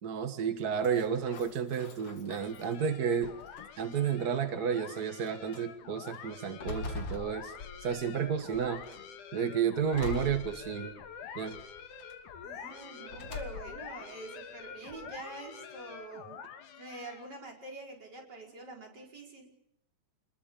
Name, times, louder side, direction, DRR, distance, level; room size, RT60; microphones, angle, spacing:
voice 1, 0.0-3.3 3.8-7.5 7.8-8.8 9.3-10.9 11.3-11.6, right 7 dB, 65° right, 8 dB, 0.9 m, -31 dB
sound 1, 0.8-2.7 3.2-3.9 4.7-4.8 5.3-5.6 6.1-8.1 8.5-9.0 9.9-11.1 11.5-12.1 13.1-13.9, left 3 dB, 45° left, 2.7 m, -43 dB
sound 2, 2.3-17.4, left 7 dB, 65° left, 2.9 m, -47 dB
voice 2, 12.4-16.4 16.8-19.5, right 2 dB, 25° right, 0 dB, 5.2 m, -46 dB
27.0 x 21.0 x 7.1 m, 0.76 s
omnidirectional pair, 4.2 m